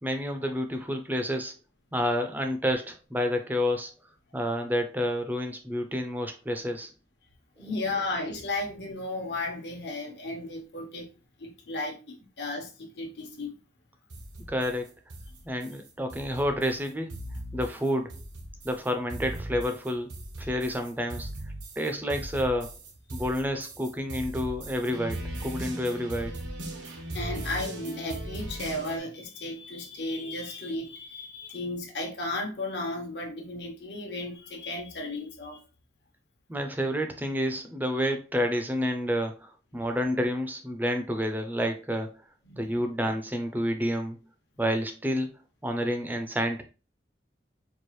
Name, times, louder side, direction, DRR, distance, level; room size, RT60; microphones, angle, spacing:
voice 1, 0.0-1.5 1.9-3.9 4.3-6.9 7.6-7.7 14.5-14.9 15.4-17.1 17.5-18.1 18.6-20.1 20.4-21.3 21.8-22.7 23.1-26.3 36.5-42.2 42.5-44.2 44.6-45.3 45.6-46.6, equal, 10° right, 0.5 m, -29 dB
voice 2, 7.6-11.1 11.4-13.6 27.1-35.6 42.5-42.7, left 2 dB, 65° left, 1.1 m, -34 dB
sound 1, 14.1-29.0, right 1 dB, 85° right, 1.0 m, -39 dB
4.5 x 2.4 x 3.1 m
head